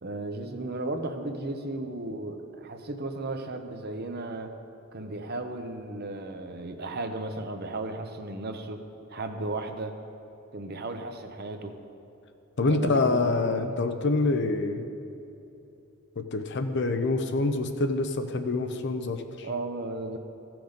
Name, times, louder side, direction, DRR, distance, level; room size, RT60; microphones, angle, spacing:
voice 1, 0.0-4.5 4.9-8.8 9.1-9.9 10.5-11.7 12.7-13.9 19.4-20.2, right 2 dB, 45° right, 6 dB, 0.7 m, -35 dB
voice 2, 12.6-14.9 16.2-19.5, left 3 dB, 50° left, 8 dB, 0.6 m, -26 dB
15.5 x 6.0 x 5.1 m, 2.8 s
head